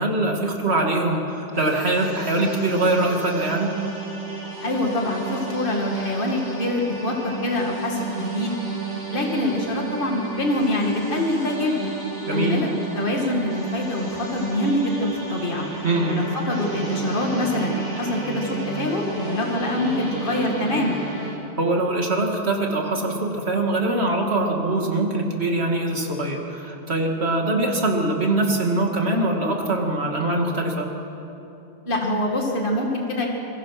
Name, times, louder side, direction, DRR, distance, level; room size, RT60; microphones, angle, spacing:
voice 1, 0.0-3.8 12.3-12.6 15.8-16.2 21.6-30.9, right 2 dB, 80° right, 1 dB, 2.6 m, -23 dB
sound 1, 1.5-21.3, right 3 dB, 50° right, 7.6 m, -33 dB
voice 2, 4.6-8.5 9.1-12.0 12.3-12.7 12.9-15.7 16.1-21.0 31.9-33.3, left 1 dB, 55° left, 0 dB, 2.5 m, -25 dB
26.5 x 20.5 x 6.0 m, 3.0 s
omnidirectional pair, 1.1 m